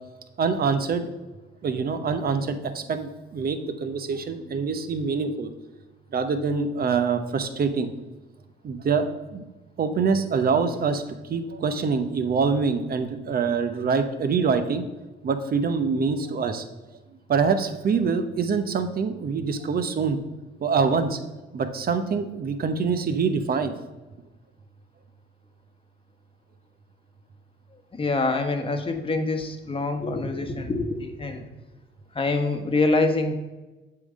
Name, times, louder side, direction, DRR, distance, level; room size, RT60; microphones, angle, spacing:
voice 1, 0.4-1.1 1.6-5.5 6.1-7.9 8.6-9.4 9.8-14.8 15.2-16.6 17.3-20.2 20.6-21.2 21.5-23.7, right 5 dB, 50° right, 9 dB, 0.9 m, -25 dB
voice 2, 27.9-31.4 32.1-33.3, left 3 dB, 25° left, 5 dB, 1.1 m, -25 dB
7.6 x 3.9 x 6.3 m, 1.1 s
cardioid pair, 90°, 20 cm